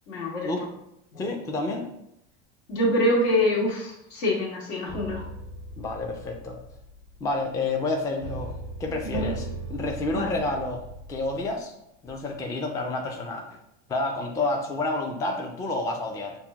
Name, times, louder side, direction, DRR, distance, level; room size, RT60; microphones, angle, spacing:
voice 1, 0.1-0.5 1.1-1.2 2.7-5.2 9.0-9.3 10.1-10.3, left 1 dB, 75° left, -3 dB, 1.4 m, -25 dB
voice 2, 1.2-1.9 5.8-6.6 7.2-8.5 8.8-10.8 11.1-11.7 12.0-13.5 13.9-16.4, left 2 dB, 10° left, 2 dB, 0.3 m, -29 dB
sound 1, 4.9-11.5 12.1-12.3, right 1 dB, 40° left, 0.9 m, -39 dB
5.4 x 2.2 x 2.2 m, 0.80 s
hypercardioid pair, 95°, 37 cm